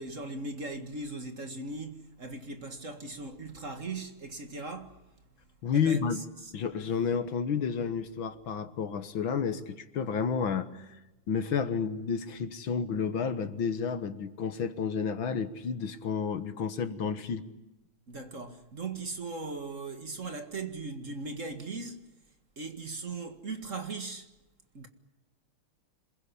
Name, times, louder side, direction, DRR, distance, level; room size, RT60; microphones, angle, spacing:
voice 1, 0.0-5.0 5.7-6.5 18.1-22.1 22.6-24.3 24.7-24.9, right 3 dB, 35° right, 2.0 m, -39 dB
voice 2, 5.6-6.2 6.5-11.0 11.3-17.4, left 6 dB, 65° left, 2.0 m, -31 dB
27.0 x 22.0 x 9.9 m
omnidirectional pair, 2.4 m